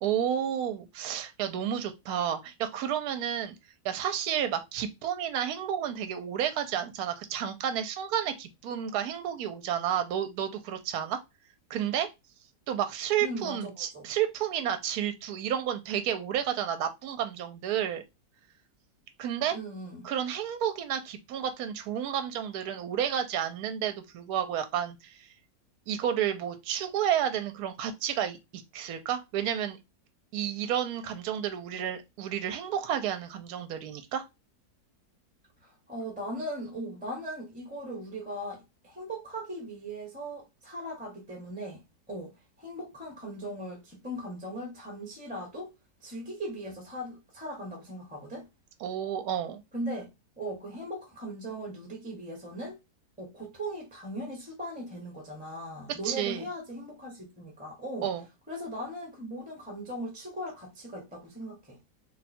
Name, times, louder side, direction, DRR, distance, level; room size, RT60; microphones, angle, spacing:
voice 1, 0.0-3.5 3.8-11.2 11.7-12.1 12.7-18.0 19.2-19.6 20.0-25.3 25.9-29.8 30.3-34.2 48.8-49.6 56.0-56.4 58.0-58.2, right 9 dB, 70° right, 1.0 m, -31 dB
voice 2, 13.2-14.0 19.5-20.1 35.6-42.3 42.6-45.7 46.0-48.5 49.7-50.1 50.4-52.8 53.2-58.1 58.5-61.8, right 1 dB, 5° right, 0.8 m, -39 dB
2.7 x 2.3 x 4.2 m
omnidirectional pair, 1.9 m